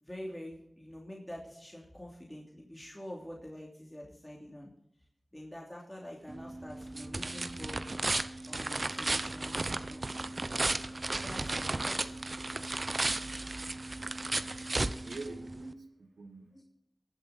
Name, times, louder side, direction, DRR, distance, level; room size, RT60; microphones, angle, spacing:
voice 1, 0.0-4.7 5.3-7.9 8.5-10.0 11.1-12.1 12.5-13.0 16.5-16.6, left 1 dB, 15° left, -2 dB, 2.9 m, -46 dB
sound 1, 6.3-15.7, right 2 dB, 50° right, 0.7 m, -34 dB
voice 2, 15.0-16.6, right 3 dB, 80° right, 7 dB, 1.3 m, -46 dB
19.5 x 7.4 x 4.2 m, 0.78 s
cardioid pair, 45°, 0 cm